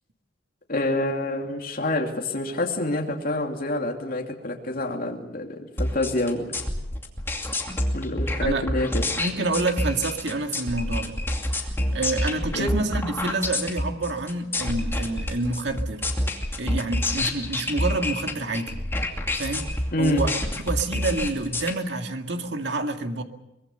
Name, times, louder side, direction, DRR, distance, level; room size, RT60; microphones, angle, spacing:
voice 1, 0.7-6.5 7.9-9.0 12.5-12.7 19.9-20.2, left 2 dB, 50° left, 1 dB, 2.9 m, -27 dB
sound 1, 5.8-21.7, left 1 dB, 15° left, 2.5 m, -28 dB
voice 2, 9.2-11.2 11.6-11.7 11.9-16.1 16.6-18.8 19.4-19.7 20.0-20.3 20.7-23.2, right 2 dB, 65° right, 5 dB, 2.1 m, -28 dB
24.0 x 21.5 x 6.9 m, 0.91 s
head